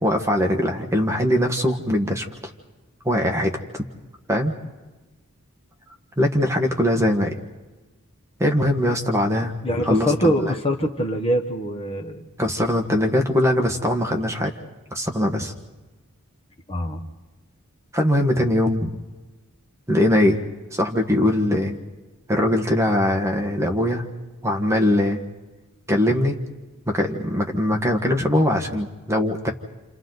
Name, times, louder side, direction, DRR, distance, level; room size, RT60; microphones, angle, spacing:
voice 1, 0.0-2.3 3.0-3.8 4.3-4.5 6.2-7.4 8.4-9.5 9.8-10.5 12.4-14.5 14.9-15.5 17.9-19.0 19.9-20.4 20.7-21.8 22.3-24.0 24.4-25.2 25.9-26.4 26.9-29.5, left 1 dB, 15° right, 2 dB, 1.5 m, -21 dB
voice 2, 9.6-12.2 16.7-17.0, equal, 25° left, 3 dB, 1.5 m, -23 dB
29.0 x 28.5 x 4.0 m, 1.2 s
head